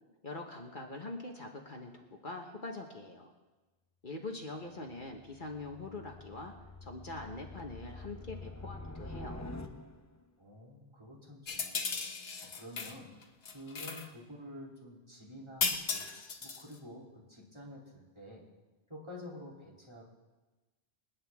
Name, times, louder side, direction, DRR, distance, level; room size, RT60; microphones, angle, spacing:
voice 1, 0.2-3.3 4.0-6.5 6.8-9.6, left 2 dB, 50° left, 2 dB, 1.4 m, -43 dB
sound 1, 5.0-10.2, left 2 dB, 20° left, 0.7 m, -46 dB
voice 2, 10.4-11.9 12.4-13.1 13.5-16.1 16.4-18.4 18.9-20.1, left 1 dB, 25° right, -4 dB, 3.3 m, -49 dB
sound 2, 11.5-13.0 13.2-14.1 15.6-16.7, left 5 dB, 70° left, 1.3 m, -36 dB
27.0 x 9.6 x 3.6 m, 1.2 s
omnidirectional pair, 1.1 m